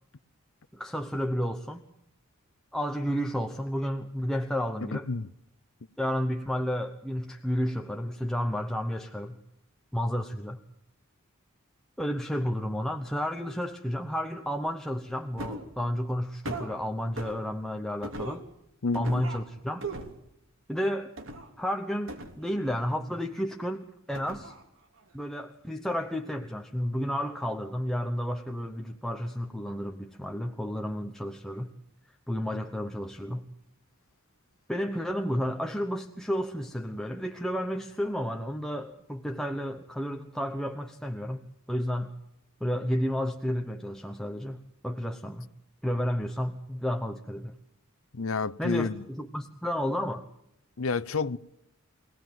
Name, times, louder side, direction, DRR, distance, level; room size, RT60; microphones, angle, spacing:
voice 1, 0.7-1.8 2.7-5.1 6.0-9.4 9.9-10.6 12.0-18.4 18.9-19.9 20.7-21.1 21.6-24.5 25.1-31.7 32.3-33.5 34.7-41.4 41.7-42.1 42.6-45.5 45.8-47.6 48.6-50.3, equal, ahead, 1.0 m, -31 dB
voice 2, 4.9-5.3 18.8-19.3 48.1-49.0 50.8-51.4, left 4 dB, 70° left, 0.7 m, -29 dB
sound 1, 15.4-15.7 16.4-16.7 17.2-17.4 18.0-18.5 18.9-19.4 19.8-20.2 21.2-21.5 22.1-22.9 24.1-24.6 25.0-25.1, right 2 dB, 65° right, 3.1 m, -38 dB
24.0 x 18.0 x 7.6 m
head